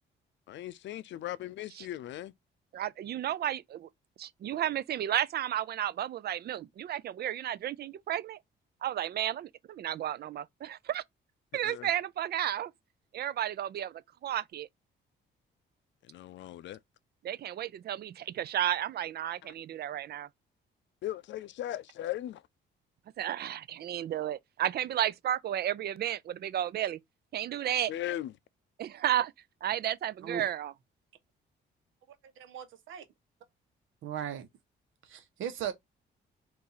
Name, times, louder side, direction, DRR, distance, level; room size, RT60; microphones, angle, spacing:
voice 1, 0.5-2.3 11.6-11.9 16.1-16.8 21.0-22.4 27.9-28.3, left 13 dB, 65° left, 0.5 m, -38 dB
voice 2, 2.7-3.9 4.2-8.4 8.8-11.0 11.5-12.7 13.1-14.7 17.2-20.3 23.2-27.0 27.3-27.9 28.8-29.3 29.6-30.7, right 11 dB, 55° right, 0.4 m, -33 dB
voice 3, 32.4-33.0 34.0-34.5 35.0-35.7, right 9 dB, 80° right, 1.0 m, -37 dB
4.1 x 2.6 x 3.9 m
cardioid pair, 90°, 20 cm